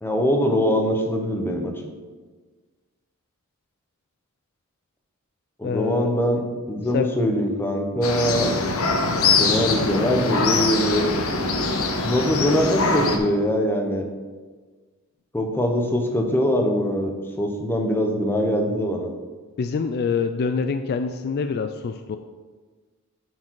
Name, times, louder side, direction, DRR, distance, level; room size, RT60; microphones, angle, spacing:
voice 1, 0.0-1.7 5.6-6.4 6.7-8.5 9.3-11.1 12.0-14.0 15.3-19.1, equal, 10° left, 3 dB, 0.9 m, -22 dB
voice 2, 5.6-6.1 6.9-7.1 19.6-22.2, left 5 dB, 45° left, 8 dB, 0.3 m, -25 dB
sound 1, 8.0-13.2, left 3 dB, 70° left, 0.9 m, -23 dB
9.3 x 4.7 x 4.6 m, 1.4 s
head